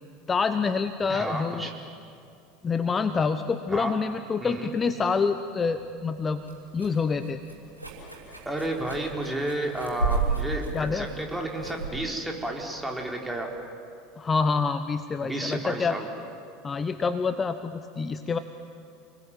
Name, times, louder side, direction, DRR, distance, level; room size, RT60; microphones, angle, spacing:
voice 1, 0.3-1.7 2.6-6.4 6.7-7.4 10.7-11.1 14.2-16.0 16.6-18.4, left 5 dB, 25° left, 10 dB, 1.0 m, -27 dB
voice 2, 1.1-1.7 3.7-3.9 4.4-4.7 8.5-13.5 15.2-16.0, right 1 dB, 5° right, 1 dB, 4.4 m, -31 dB
sound 1, 5.7-13.4, right 3 dB, 90° right, 5.7 m, -34 dB
29.0 x 21.0 x 9.3 m, 2.5 s
figure-of-eight pair, 75°, 0 cm